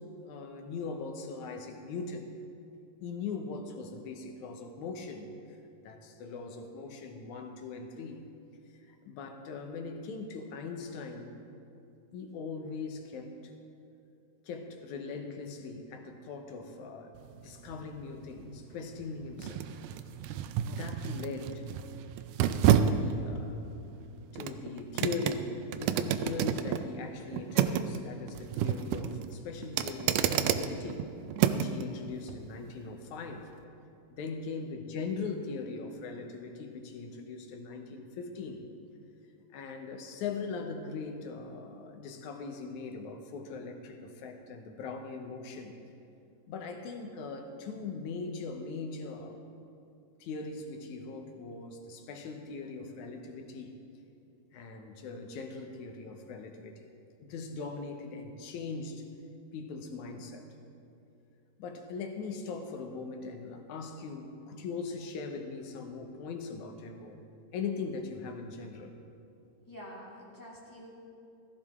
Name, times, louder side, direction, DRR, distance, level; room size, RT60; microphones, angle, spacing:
voice 1, 0.0-2.3 3.0-5.4 5.8-8.3 8.7-11.4 12.1-13.5 14.5-19.6 20.7-21.6 22.6-23.6 24.3-31.1 31.5-33.5 34.1-38.6 39.5-45.7 46.5-49.4 50.2-53.7 54.5-56.9 57.2-59.1 59.5-60.4 61.6-67.2 67.5-68.9, left 4 dB, 70° left, 4 dB, 2.3 m, -40 dB
sound 1, 17.2-31.8 32.3-32.4, right 9 dB, 85° right, 2.2 m, -31 dB
voice 2, 69.7-70.9, equal, 5° left, -6 dB, 2.1 m, -47 dB
15.5 x 15.5 x 3.6 m, 2.6 s
omnidirectional pair, 3.7 m